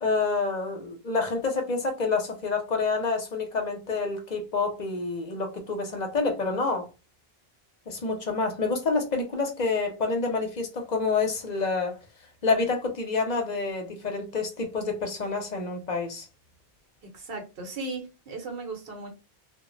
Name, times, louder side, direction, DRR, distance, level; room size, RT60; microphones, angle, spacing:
voice 1, 0.0-6.9 7.9-12.0 12.4-16.3, left 4 dB, 50° left, 0.7 m, -28 dB
voice 2, 17.0-19.1, right 3 dB, 65° right, 1.0 m, -37 dB
2.2 x 2.0 x 3.7 m
omnidirectional pair, 1.0 m